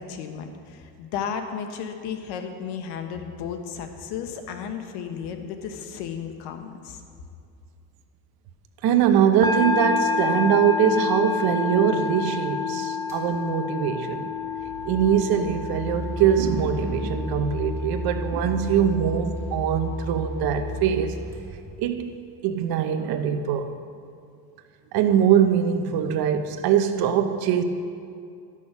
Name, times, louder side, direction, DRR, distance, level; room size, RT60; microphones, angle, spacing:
voice 1, 0.0-7.0, left 7 dB, 75° left, 6 dB, 1.1 m, -34 dB
voice 2, 8.8-14.3 14.8-21.2 21.8-22.2 22.4-23.7 24.9-27.6, right 8 dB, 65° right, 8 dB, 0.9 m, -22 dB
sound 1, 9.4-20.8, left 5 dB, 10° left, 0.8 m, -30 dB
sound 2, 13.1-13.3 14.2-22.2, equal, 5° right, 2.6 m, -34 dB
11.5 x 6.2 x 6.0 m, 2.4 s
cardioid pair, 130°, 40 cm